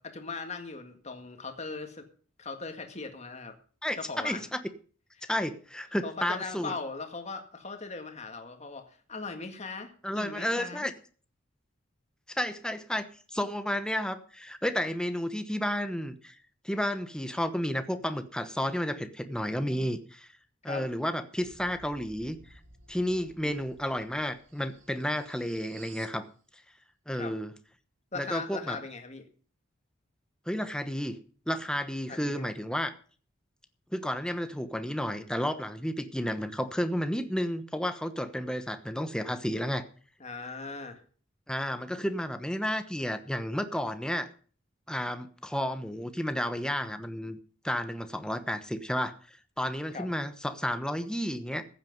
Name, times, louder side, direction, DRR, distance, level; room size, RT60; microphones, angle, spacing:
voice 1, 0.0-2.0 2.4-3.5 4.0-4.5 5.2-5.3 6.0-10.9 19.7-19.9 20.7-20.9 23.4-23.7 27.1-27.4 28.1-29.3 32.1-32.5 40.2-41.0 49.9-50.1, left 4 dB, 35° left, 5 dB, 1.9 m, -39 dB
voice 2, 4.2-4.6 5.2-6.7 10.0-10.9 12.3-16.4 16.6-20.3 20.6-22.4 22.9-26.3 27.1-27.5 28.1-28.8 30.5-31.2 31.5-32.9 33.9-39.8 41.5-44.3 44.9-47.4 47.6-51.6, equal, 5° left, 9 dB, 1.0 m, -32 dB
sound 1, 21.4-26.2, right 3 dB, 70° right, 2.8 m, -55 dB
15.0 x 8.9 x 5.3 m, 0.42 s
head